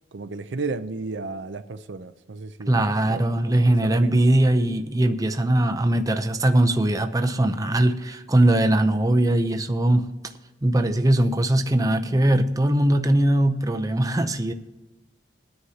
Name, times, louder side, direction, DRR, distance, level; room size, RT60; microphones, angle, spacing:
voice 1, 0.1-3.6 3.8-4.2, right 3 dB, 75° right, 0.6 m, -34 dB
voice 2, 2.7-10.1 10.6-14.5, right 1 dB, 20° right, 0.6 m, -20 dB
21.0 x 9.6 x 2.9 m
head